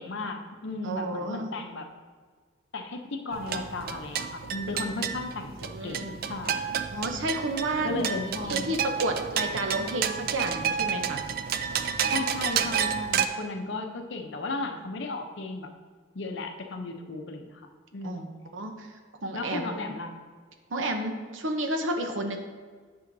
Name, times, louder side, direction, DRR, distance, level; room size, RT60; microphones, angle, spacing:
voice 1, 0.0-1.9 2.7-5.5 5.8-6.7 7.8-8.6 12.1-15.7 16.1-17.6 17.9-18.3 19.3-20.1, left 3 dB, 60° left, 5 dB, 0.7 m, -35 dB
voice 2, 0.8-1.5 5.7-6.2 6.9-8.1 8.5-11.2 18.0-18.3 18.5-18.9 19.2-19.8 20.7-22.4, right 1 dB, 65° right, 5 dB, 0.8 m, -31 dB
sound 1, 3.3-13.3, right 7 dB, 45° right, 0.3 m, -30 dB
9.3 x 6.3 x 2.7 m, 1.5 s
head